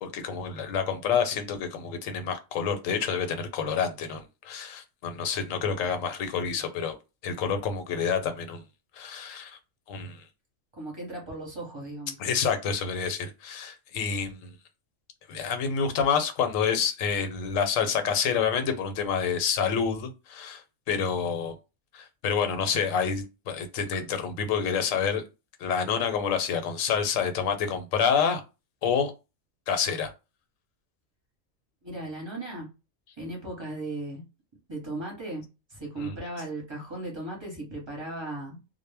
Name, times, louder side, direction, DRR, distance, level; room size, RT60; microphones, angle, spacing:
voice 1, 0.0-6.9 7.2-8.6 8.9-9.6 9.9-10.2 12.2-14.5 15.3-21.5 21.9-25.2 25.6-28.4 28.8-29.1 29.7-30.1 36.0-36.1, left 6 dB, 80° left, 1.0 m, -28 dB
voice 2, 10.7-12.2 31.8-32.7 33.2-34.2 34.7-38.6, right 2 dB, 25° right, 0.8 m, -37 dB
2.2 x 2.0 x 3.2 m
omnidirectional pair, 1.4 m